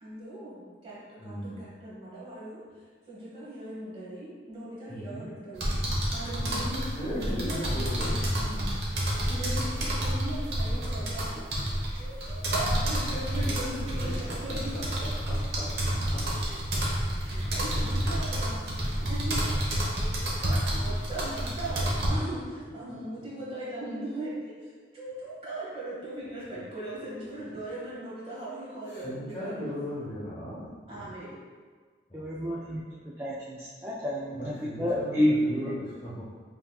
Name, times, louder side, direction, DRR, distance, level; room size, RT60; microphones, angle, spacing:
voice 1, 0.0-2.6 3.1-7.7 9.3-11.4 11.9-14.8 16.4-16.8 17.2-19.5 19.9-29.7 30.9-31.4, right 1 dB, 35° right, -8 dB, 1.1 m, -39 dB
voice 2, 1.2-1.6 4.9-5.2 6.4-6.7 7.0-8.8 13.4-13.6 16.8-17.5 17.8-18.6 28.9-31.1 32.1-32.8 34.3-36.2, equal, 20° left, -12 dB, 0.8 m, -38 dB
sound 1, 5.6-22.1, right 1 dB, 70° right, 0.9 m, -29 dB
voice 3, 32.1-32.8 33.2-35.3, left 1 dB, 15° right, -5 dB, 0.3 m, -29 dB
5.4 x 2.8 x 2.3 m, 1.5 s
head